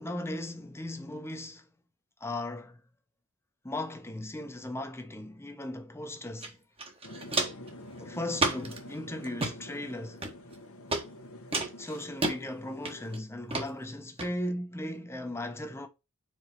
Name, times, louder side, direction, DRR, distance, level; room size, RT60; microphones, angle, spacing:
voice 1, 0.0-1.7 2.2-2.8 3.6-6.6 8.0-10.3 11.7-15.9, left 1 dB, 10° left, 1.0 m, -37 dB
Walk footsteps, 6.4-6.5 6.8-7.7 8.4-8.8 9.2-9.5 10.2-10.6 10.9-11.0 11.5-12.4 12.9-13.2 13.5-13.7 14.2-14.3, right 2 dB, 25° right, 1.5 m, -30 dB
sound 1, 7.0-13.2, left 1 dB, 70° left, 1.2 m, -47 dB
5.1 x 4.5 x 5.8 m
head